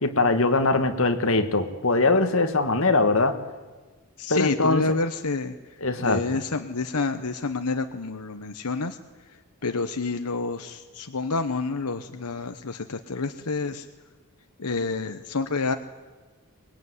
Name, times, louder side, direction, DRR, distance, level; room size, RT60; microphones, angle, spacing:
voice 1, 0.0-3.4 4.3-5.0 5.8-6.2, left 3 dB, 65° left, 6 dB, 1.9 m, -22 dB
voice 2, 4.2-5.5 6.0-9.0 9.6-13.8 14.6-15.7, left 3 dB, 90° left, 8 dB, 1.0 m, -28 dB
24.0 x 20.5 x 9.7 m, 1.3 s
head